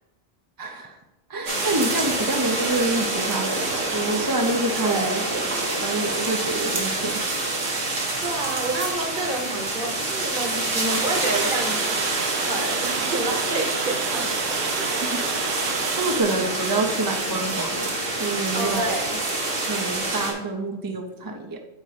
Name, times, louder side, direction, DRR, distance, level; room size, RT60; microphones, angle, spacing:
voice 1, 0.6-1.0 1.3-7.4 16.0-19.0 19.7-21.6, right 2 dB, 25° right, 3 dB, 0.5 m, -27 dB
sound 1, 1.5-20.3, right 2 dB, 80° right, 1.9 m, -27 dB
voice 2, 4.8-5.3 8.2-11.9 12.4-14.3 14.8-14.9 18.5-19.2, right 2 dB, 45° right, 3 dB, 1.3 m, -29 dB
Water, 10.9-16.2, right 7 dB, 65° right, 0.8 m, -31 dB
8.1 x 4.4 x 5.0 m, 1.0 s
omnidirectional pair, 1.3 m